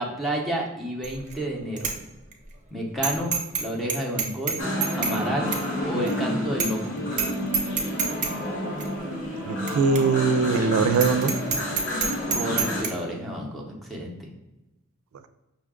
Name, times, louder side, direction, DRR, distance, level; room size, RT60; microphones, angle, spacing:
voice 1, 0.0-1.9 2.7-3.3 3.6-4.6 5.0-5.5 5.8-7.0 12.3-14.3, right 1 dB, ahead, -1 dB, 0.7 m, -30 dB
Bicycle bell, 1.0-1.4 1.8-1.9 2.3-2.4 3.0-3.6 3.9-5.2 5.5-5.6 6.1-6.2 6.6-6.9 7.1-7.3 7.5-8.3 8.8-8.9 9.7-9.8 10.0-10.1 10.4-10.6 10.9-12.9, right 5 dB, 40° right, 0.6 m, -26 dB
sound 1, 4.6-12.8, equal, 60° left, 1.1 m, -30 dB
voice 2, 9.4-11.3, right 4 dB, 80° right, 11 dB, 0.3 m, -21 dB
5.5 x 2.2 x 3.5 m, 0.99 s
head